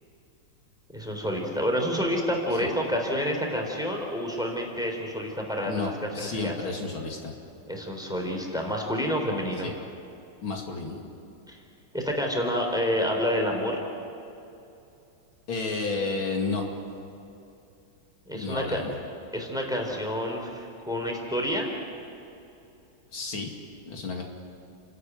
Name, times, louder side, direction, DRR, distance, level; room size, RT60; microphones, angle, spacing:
voice 1, 0.9-6.6 7.7-9.7 11.5-11.6 11.9-13.8 18.3-18.8 19.3-21.7, equal, ahead, 1 dB, 3.7 m, -28 dB
voice 2, 5.7-7.3 9.6-9.7 10.4-11.0 15.5-16.7 18.3-18.9 23.1-23.5 23.8-24.2, left 3 dB, 85° left, 1 dB, 3.3 m, -31 dB
30.0 x 13.0 x 9.4 m, 2.7 s
omnidirectional pair, 2.2 m